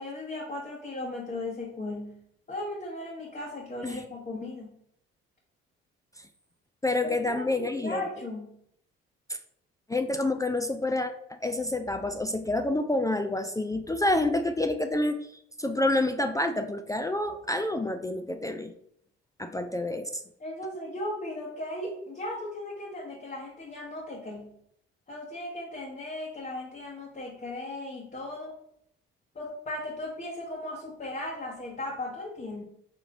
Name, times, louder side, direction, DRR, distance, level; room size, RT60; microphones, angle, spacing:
voice 1, 0.0-2.2 2.5-4.7 7.0-8.5 20.4-24.5 25.1-28.6 29.3-32.6, left 1 dB, 30° left, -3 dB, 1.1 m, -37 dB
voice 2, 6.8-8.0 9.9-15.3 15.6-18.7 19.4-20.2, left 2 dB, 10° left, 6 dB, 0.4 m, -28 dB
3.8 x 3.2 x 3.7 m, 0.71 s
hypercardioid pair, 55°, 29 cm